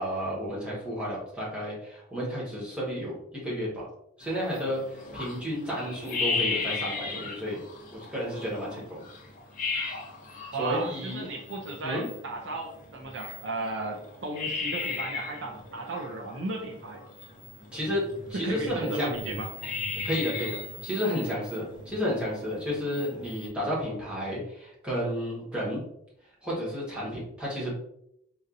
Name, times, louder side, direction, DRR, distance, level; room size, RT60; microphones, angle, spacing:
voice 1, 0.0-3.9 4.2-7.6 7.9-9.0 10.5-11.3 11.8-12.1 17.7-19.1 20.0-25.8 26.4-27.7, equal, 5° right, -7 dB, 1.3 m, -32 dB
sound 1, 4.2-23.5, left 4 dB, 40° left, 0.7 m, -37 dB
voice 2, 10.5-17.0 18.4-19.5, right 2 dB, 60° right, 2 dB, 0.4 m, -35 dB
4.2 x 2.6 x 2.5 m, 0.75 s
head